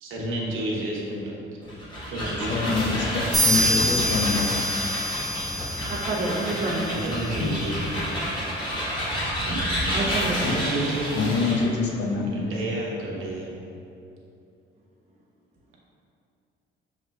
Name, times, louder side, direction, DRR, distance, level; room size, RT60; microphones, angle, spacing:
voice 1, 0.0-1.4 2.1-2.6 6.9-8.2 8.6-8.8 9.4-9.6 10.0-10.1 10.4-11.6 12.3-13.5, right 1 dB, 75° right, -3 dB, 0.9 m, -30 dB
sound 1, 1.6-11.7, equal, 20° left, 1.1 m, -29 dB
voice 2, 2.5-4.6 7.4-7.5 10.4-10.5 11.1-12.3, left 4 dB, 60° left, -1 dB, 0.6 m, -26 dB
sound 2, 3.3-6.9, equal, ahead, 0.7 m, -26 dB
voice 3, 5.9-6.9 9.9-10.4, right 2 dB, 30° right, -4 dB, 0.7 m, -28 dB
6.5 x 3.1 x 2.3 m, 2.6 s
cardioid pair, 160°, 21 cm